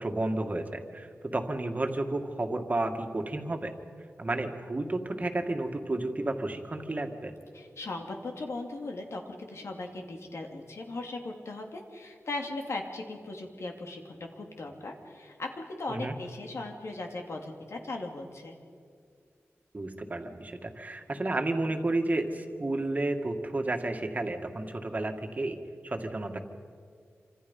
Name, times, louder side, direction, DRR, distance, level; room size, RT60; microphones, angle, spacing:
voice 1, 0.0-3.7 4.2-7.3 15.9-16.1 19.7-25.6 25.8-26.4, right 2 dB, 35° right, 5 dB, 2.0 m, -31 dB
voice 2, 7.5-18.6, left 2 dB, 70° left, 2 dB, 2.9 m, -38 dB
27.0 x 26.0 x 5.5 m, 2.2 s
wide cardioid pair, 120°, 5 cm